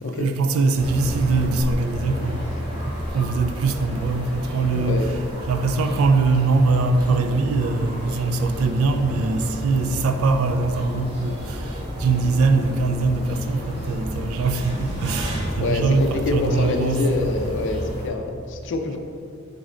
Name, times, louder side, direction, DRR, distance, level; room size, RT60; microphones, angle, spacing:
voice 1, 0.1-5.0 5.5-17.0, right 3 dB, 75° right, 0.4 m, -22 dB
sound 1, 0.7-18.1, equal, 25° right, 1.0 m, -31 dB
voice 2, 4.7-5.1 15.6-19.0, left 2 dB, 60° left, 0.4 m, -26 dB
3.9 x 3.2 x 3.7 m
head